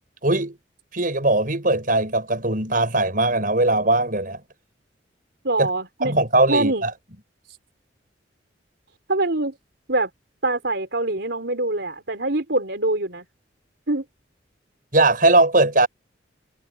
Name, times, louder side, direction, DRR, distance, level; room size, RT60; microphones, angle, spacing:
voice 1, 0.2-0.6 0.9-4.4 5.6-5.7 6.0-6.9 14.9-15.9, right 2 dB, 45° right, 7.4 m, -19 dB
voice 2, 5.4-6.2 6.5-6.9 9.1-9.5 9.9-10.1 10.4-13.2 13.9-14.0, right 2 dB, 65° right, 4.8 m, -24 dB
head